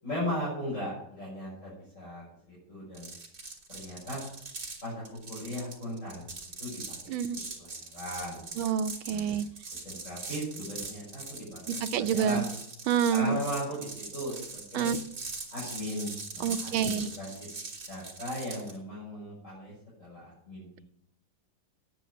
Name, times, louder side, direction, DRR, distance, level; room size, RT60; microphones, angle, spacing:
voice 1, 0.0-3.1 3.7-4.2 4.8-5.0 5.3-6.3 6.6-6.8 7.6-8.4 9.1-9.4 9.9-11.6 11.9-12.5 13.1-14.9 15.5-17.5 17.9-19.7 20.0-20.8, equal, 35° left, -8 dB, 6.9 m, -37 dB
sound 1, 2.9-18.8, right 3 dB, 45° right, 3.1 m, -41 dB
voice 2, 7.1-7.4 8.6-9.5 11.7-12.5 12.9-13.4 14.7-15.0 16.4-17.1, right 8 dB, 75° right, 10 dB, 1.5 m, -28 dB
10.0 x 8.8 x 9.2 m, 0.74 s
omnidirectional pair, 2.3 m